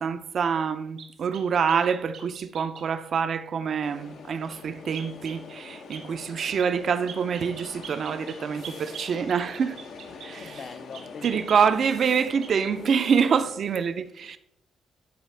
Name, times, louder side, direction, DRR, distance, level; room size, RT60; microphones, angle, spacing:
voice 1, 0.0-9.8 10.2-10.6 11.2-14.4, right 6 dB, 55° right, 0.5 m, -26 dB
sound 1, 1.0-2.9 4.9-5.4 5.9-6.1 6.4-6.7 7.1-10.3 10.9-12.2 12.4-12.7, right 6 dB, 75° right, 1.3 m, -44 dB
sound 2, 3.8-13.6, left 4 dB, 75° left, 0.8 m, -44 dB
voice 2, 10.4-11.7, left 5 dB, 50° left, 0.4 m, -42 dB
10.5 x 4.1 x 3.3 m
cardioid pair, 90°, 0 cm